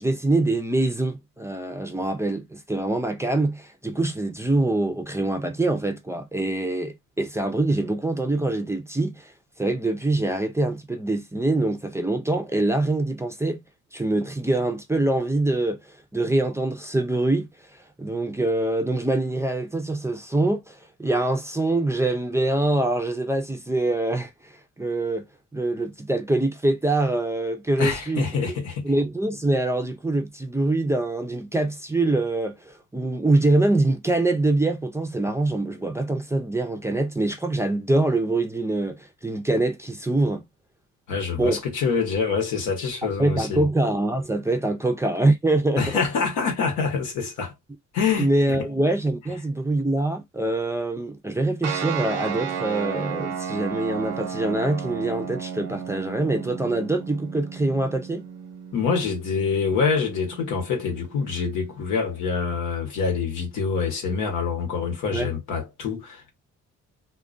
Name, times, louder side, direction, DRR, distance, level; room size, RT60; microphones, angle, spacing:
voice 1, 0.0-9.3 9.6-13.6 13.9-25.3 25.5-28.6 28.8-40.4 41.4-41.6 43.2-45.8 48.2-58.2 65.1-65.3, right 2 dB, 10° right, 0.4 m, -24 dB
voice 2, 27.8-28.9 41.1-43.7 45.8-47.5 47.9-48.3 58.7-66.3, left 5 dB, 90° left, 1.0 m, -26 dB
sound 1, 51.6-62.5, right 7 dB, 90° right, 0.6 m, -34 dB
2.3 x 2.2 x 2.4 m
cardioid pair, 90°, 30 cm